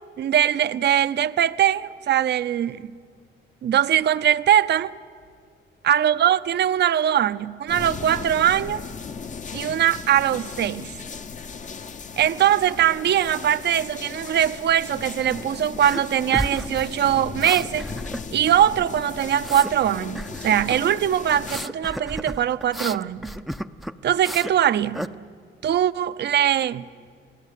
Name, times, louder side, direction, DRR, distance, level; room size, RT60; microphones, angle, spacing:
voice 1, 0.2-2.9 3.6-4.9 5.8-8.8 9.5-10.9 12.2-17.9 18.3-23.3 24.0-25.0 25.6-26.9, right 10 dB, 60° right, 0.7 m, -21 dB
sound 1, 7.7-21.7, left 5 dB, 40° left, 0.9 m, -37 dB
sound 2, 15.8-16.0 16.3-18.5 18.8-19.7 20.1-20.8 21.4-24.6 24.9-25.1, equal, ahead, 0.6 m, -32 dB
29.0 x 18.5 x 8.3 m
cardioid pair, 90°, 20 cm